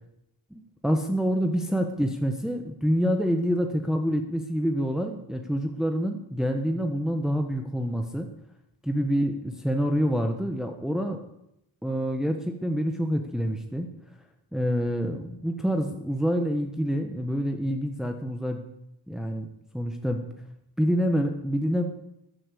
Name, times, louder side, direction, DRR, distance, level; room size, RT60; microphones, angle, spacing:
voice 1, 0.5-8.3 8.8-11.2 11.8-13.9 14.5-18.6 19.1-19.5 19.7-20.2 20.8-21.8, equal, ahead, 4 dB, 1.5 m, -27 dB
13.5 x 8.8 x 8.5 m, 0.83 s
cardioid pair, 70°, 46 cm